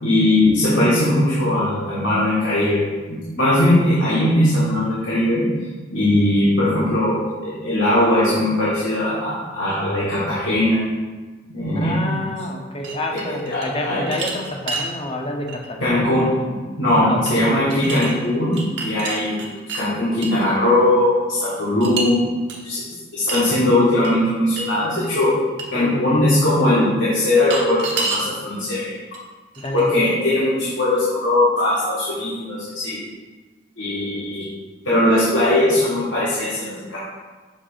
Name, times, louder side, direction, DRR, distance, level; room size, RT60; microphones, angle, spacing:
voice 1, 0.0-5.5 5.9-10.8 11.5-12.0 13.1-14.0 15.8-19.4 19.7-22.2 22.6-22.8 23.1-25.4 25.7-28.9 29.7-33.0 33.8-34.5 34.8-37.0, left 1 dB, 75° left, -9 dB, 1.6 m, -19 dB
voice 2, 11.8-16.0 17.0-17.5 25.7-26.2 29.6-30.0, left 1 dB, 30° left, 2 dB, 0.7 m, -28 dB
sound 1, 12.8-13.7 14.1-14.9 15.5-15.7 17.3-17.4 17.7-18.1 18.5-19.8 20.2-20.4 21.8-22.1 22.5-22.6 23.3-23.5 24.0-24.1 24.6-24.7 25.0-25.1 25.6-25.7 27.4-28.3 29.1-29.2 29.5-30.1, right 3 dB, 65° right, 1.1 m, -28 dB
7.1 x 3.2 x 5.0 m, 1.3 s
head